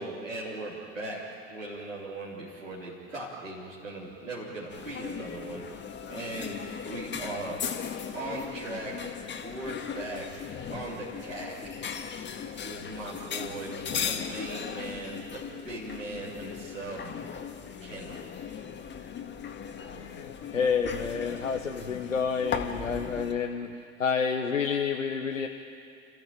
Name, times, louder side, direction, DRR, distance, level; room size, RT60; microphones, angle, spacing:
voice 1, 0.0-7.6 8.1-9.0 9.4-10.3 10.7-11.6 12.5-13.7 14.0-17.0 17.8-18.2, right 2 dB, 90° right, -9 dB, 3.6 m, -39 dB
sound 1, 4.7-23.3, left 7 dB, 30° left, 1.9 m, -38 dB
voice 2, 19.9-23.7 24.0-25.5, left 6 dB, 85° left, 4 dB, 1.1 m, -29 dB
29.5 x 15.0 x 9.1 m, 2.5 s
figure-of-eight pair, 70°, 38 cm